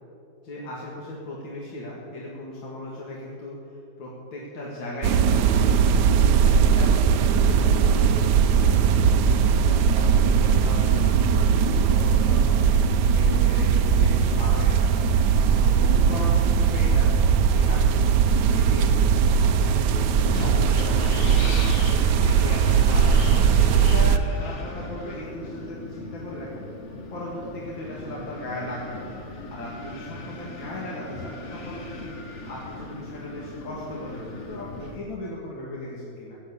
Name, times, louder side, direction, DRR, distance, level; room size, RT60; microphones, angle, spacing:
voice 1, 0.4-6.0 6.4-8.8 9.2-15.0 15.6-17.1 17.4-19.7 20.4-21.8 22.1-26.7 27.1-29.1 29.5-36.3, left 1 dB, 85° left, -5 dB, 2.7 m, -37 dB
sound 1, 5.0-24.2, right 6 dB, 70° right, 1.2 m, -19 dB
Wind, 19.8-35.0, left 2 dB, 40° left, 1.5 m, -37 dB
15.5 x 8.7 x 8.5 m, 2.9 s
omnidirectional pair, 2.0 m